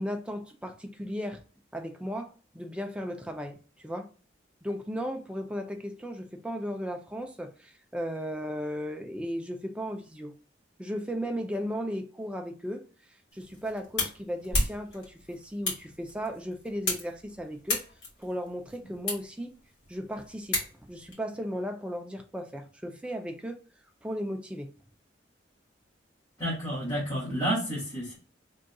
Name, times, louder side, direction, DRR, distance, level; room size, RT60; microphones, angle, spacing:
voice 1, 0.0-1.4 1.7-4.1 4.6-10.3 10.8-12.8 13.3-17.8 18.2-19.6 19.9-23.6 24.0-24.7, equal, 5° right, 0.5 m, -36 dB
sound 1, 13.3-21.1, left 2 dB, 65° left, 2.1 m, -35 dB
voice 2, 26.4-28.2, equal, 20° left, 2.1 m, -30 dB
4.0 x 3.6 x 2.3 m
head